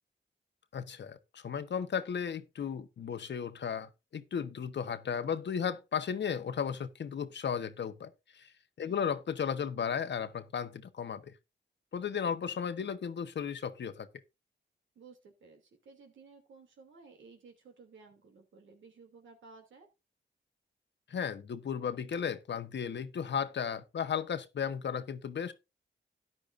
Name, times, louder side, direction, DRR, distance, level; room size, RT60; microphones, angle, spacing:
voice 1, 0.7-8.5 8.8-11.2 11.9-14.1 21.1-25.5, left 7 dB, 70° left, 1.1 m, -35 dB
voice 2, 8.8-9.2 14.9-19.9, right 4 dB, 90° right, 2.8 m, -56 dB
13.5 x 10.0 x 2.5 m
cardioid pair, 65°, 19 cm